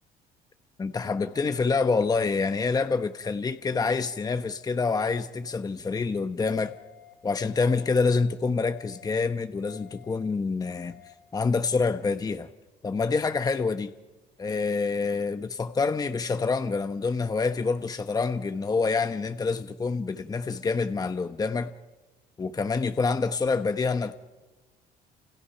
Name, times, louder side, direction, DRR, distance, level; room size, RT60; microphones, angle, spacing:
voice 1, 0.8-6.7 7.2-11.0 11.3-12.5 12.8-13.9 14.4-21.7 22.4-24.2, left 4 dB, 20° left, 0.9 m, -27 dB
sound 1, 6.6-7.1 7.6-8.1 8.6-9.1 9.6-10.1 10.6-11.1, left 17 dB, 90° left, 4.2 m, -52 dB
29.0 x 28.5 x 5.7 m
cardioid pair, 110°, 17 cm